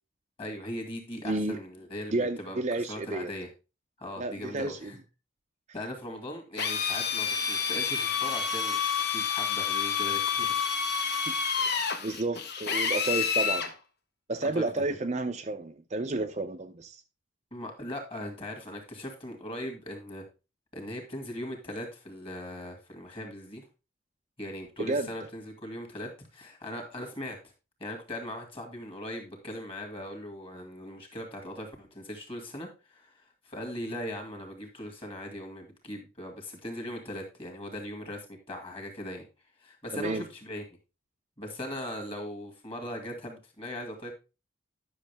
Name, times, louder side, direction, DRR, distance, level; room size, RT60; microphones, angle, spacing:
voice 1, 0.4-2.6 2.9-3.5 4.0-5.0 5.7-10.7 11.0-11.3 14.4-14.8 17.5-20.2 20.7-23.7 24.4-27.4 27.8-39.3 39.6-40.6 41.4-44.1, left 1 dB, 25° left, 2.3 m, -39 dB
voice 2, 1.2-1.6 2.1-3.3 4.2-4.9 11.3-13.6 14.3-17.0 24.8-25.1 39.9-40.2, right 2 dB, 35° right, 0.5 m, -31 dB
Drill, 6.6-13.7, left 7 dB, 55° left, 1.1 m, -29 dB
10.5 x 6.4 x 3.4 m
head